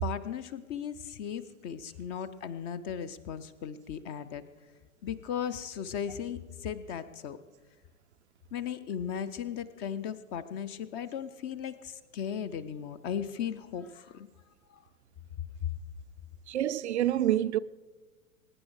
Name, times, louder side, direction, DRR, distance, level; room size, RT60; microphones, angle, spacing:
voice 1, 0.0-4.4 5.0-7.4 8.5-14.3 14.7-14.8, left 8 dB, 25° left, 0.5 m, -37 dB
voice 2, 16.5-17.6, right 12 dB, 50° right, 0.5 m, -27 dB
22.5 x 9.8 x 4.7 m
figure-of-eight pair, 100°, 43 cm